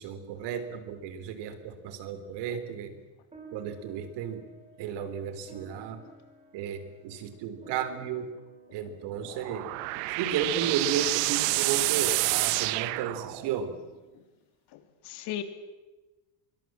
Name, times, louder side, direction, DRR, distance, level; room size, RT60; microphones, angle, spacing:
voice 1, 0.0-3.0 3.5-4.4 4.8-6.0 6.5-8.3 8.7-9.7 10.2-13.7, right 8 dB, 60° right, 11 dB, 3.7 m, -33 dB
sound 1, 3.3-12.0, right 2 dB, 15° right, 5.8 m, -54 dB
sound 2, 9.2-13.7, right 23 dB, 85° right, 1.0 m, -28 dB
voice 2, 14.7-15.4, left 12 dB, 55° left, 9 dB, 3.1 m, -37 dB
26.0 x 23.5 x 7.6 m, 1.1 s
cardioid pair, 155°, 46 cm